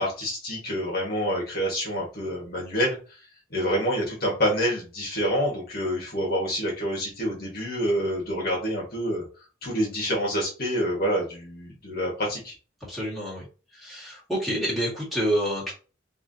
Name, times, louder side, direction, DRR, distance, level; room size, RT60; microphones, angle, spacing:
voice 1, 0.0-3.0 3.5-9.2 9.6-12.5, equal, 50° left, -2 dB, 1.6 m, -27 dB
voice 2, 12.9-13.4 13.8-15.7, equal, ahead, -8 dB, 2.0 m, -28 dB
4.7 x 2.8 x 2.7 m, 0.35 s
head